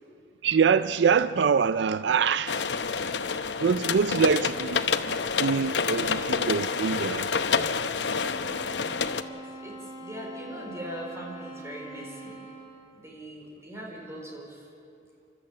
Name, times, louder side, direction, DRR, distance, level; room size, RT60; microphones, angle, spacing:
voice 1, 0.4-2.7 3.6-7.3, right 6 dB, 75° right, 0.4 m, -25 dB
sound 1, 2.5-9.2, left 5 dB, 75° left, 0.8 m, -28 dB
sound 2, 8.0-12.9, right 1 dB, 25° left, 7.6 m, -43 dB
voice 2, 9.6-12.4 12.9-14.7, equal, 15° right, 4.7 m, -41 dB
29.5 x 13.0 x 8.5 m
head